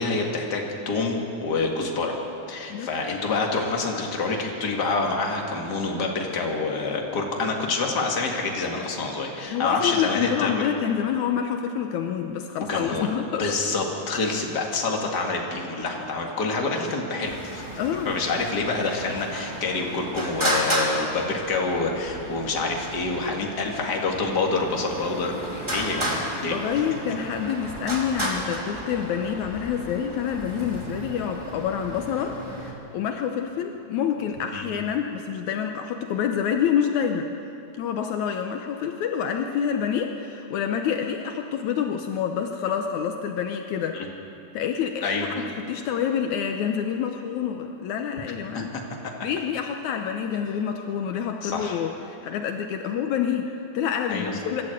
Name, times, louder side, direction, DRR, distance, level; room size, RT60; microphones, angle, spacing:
voice 1, 0.0-2.2 2.5-10.7 12.7-13.1 13.4-17.6 18.1-26.8 34.5-34.7 43.9-44.1 45.0-45.3 48.5-48.8 51.4-51.8 54.1-54.3, left 3 dB, 35° left, 0 dB, 2.4 m, -27 dB
voice 2, 9.5-13.4 17.8-18.1 26.5-37.3 37.8-44.0 44.5-48.7 49.2-54.6, left 8 dB, 75° left, 4 dB, 2.2 m, -27 dB
Traffic noise roadway noise, 17.2-32.7, equal, 10° right, 2.2 m, -33 dB
25.5 x 12.5 x 8.1 m, 3.0 s
omnidirectional pair, 3.6 m